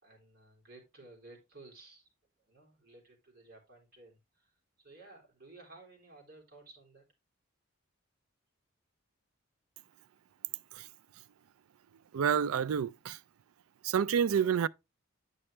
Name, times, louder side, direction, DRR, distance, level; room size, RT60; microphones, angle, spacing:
voice 1, 0.0-2.1 2.4-7.1, right 2 dB, 45° right, 3.2 m, -56 dB
voice 2, 12.1-13.2 13.8-14.7, right 7 dB, 80° right, 0.4 m, -29 dB
9.8 x 5.3 x 3.2 m
head